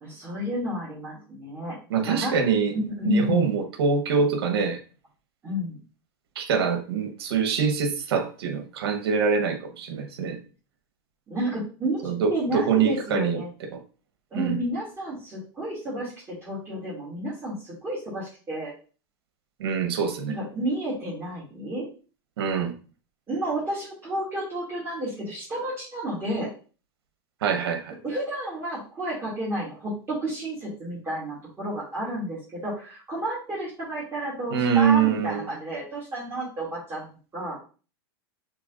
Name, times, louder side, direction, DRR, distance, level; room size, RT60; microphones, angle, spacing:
voice 1, 0.0-1.8 2.0-2.3 2.7-3.5 5.4-5.8 11.3-13.5 14.3-18.7 20.3-21.9 23.3-26.5 28.0-37.1 37.3-37.6, right 1 dB, 20° right, 2.2 m, -31 dB
voice 2, 1.9-2.7 3.0-4.8 6.4-10.4 12.0-13.4 13.7-13.8 14.3-14.6 19.6-20.3 22.4-22.7 27.4-27.9 34.5-35.4, right 6 dB, 80° right, 1.1 m, -24 dB
6.0 x 3.5 x 2.5 m
supercardioid pair, 130°, 13 cm